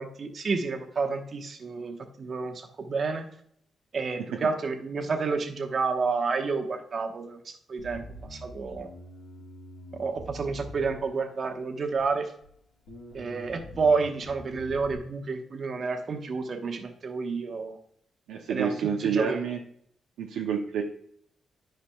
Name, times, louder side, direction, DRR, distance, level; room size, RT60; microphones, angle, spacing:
voice 1, 0.0-3.3 3.9-8.9 9.9-12.3 13.1-17.8 18.5-19.4, right 4 dB, 55° right, 5 dB, 1.1 m, -30 dB
Bass guitar, 7.8-11.4 12.0-12.5 12.9-15.0, equal, 80° left, 2.8 m, -45 dB
voice 2, 18.3-19.6 20.2-20.8, right 7 dB, 85° right, 0 dB, 0.6 m, -28 dB
10.0 x 5.0 x 2.3 m, 0.64 s
supercardioid pair, 50°, 0 cm